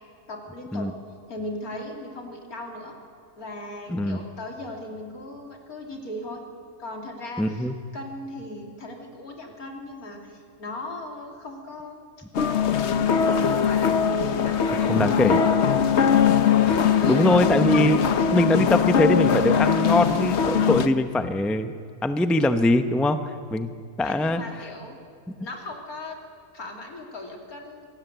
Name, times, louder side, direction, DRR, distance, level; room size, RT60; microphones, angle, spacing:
voice 1, 0.3-1.0 1.3-2.9 3.4-6.4 6.8-12.0 12.8-15.5 16.9-17.6 24.0-25.0 25.4-26.2 26.5-27.9, left 1 dB, 75° left, 1 dB, 3.6 m, -37 dB
voice 2, 3.9-4.2 7.4-7.7 14.9-15.4 16.7-21.7 22.0-23.7 24.0-24.4 25.3-25.4, left 1 dB, ahead, 9 dB, 0.5 m, -22 dB
sound 1, 12.3-20.9, left 7 dB, 55° left, 1.1 m, -21 dB
26.5 x 18.5 x 8.1 m, 2.3 s
omnidirectional pair, 1.5 m